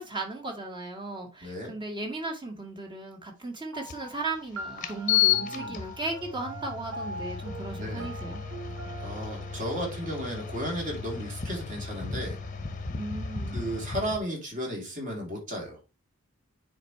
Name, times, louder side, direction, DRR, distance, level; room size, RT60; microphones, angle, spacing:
voice 1, 0.0-8.4 12.9-13.6, right 2 dB, 25° right, 1.9 m, -36 dB
voice 2, 1.4-1.7 5.3-5.8 7.8-8.1 9.0-12.4 13.5-15.8, equal, 40° right, 3.2 m, -34 dB
sound 1, 3.7-12.6, right 2 dB, 85° right, 1.4 m, -43 dB
sound 2, 3.9-4.0 4.8-14.2, left 9 dB, 40° left, 0.9 m, -33 dB
9.5 x 4.5 x 3.1 m
head